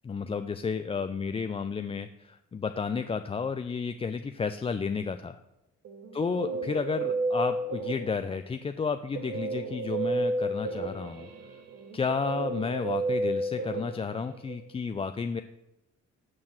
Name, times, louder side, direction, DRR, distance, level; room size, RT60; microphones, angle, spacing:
voice 1, 0.0-5.4 6.1-11.3 11.9-15.4, left 5 dB, 20° left, 8 dB, 0.3 m, -32 dB
Guitar, 5.8-8.4 9.1-14.6, right 2 dB, 55° right, 1.1 m, -32 dB
8.7 x 4.7 x 7.3 m, 0.94 s
cardioid pair, 90°, 30 cm